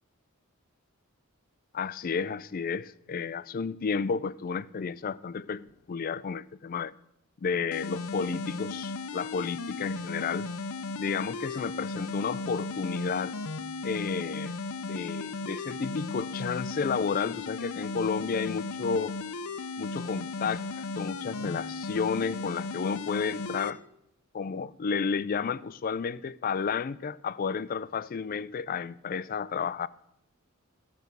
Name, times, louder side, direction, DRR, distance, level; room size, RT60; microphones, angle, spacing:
voice 1, 1.7-6.9 7.4-10.5 11.0-13.3 13.8-14.5 14.8-19.2 19.8-23.8 24.3-29.9, left 5 dB, 40° left, 0.3 m, -32 dB
sound 1, 7.7-23.7, left 3 dB, 80° left, 0.6 m, -36 dB
14.0 x 6.1 x 6.7 m
head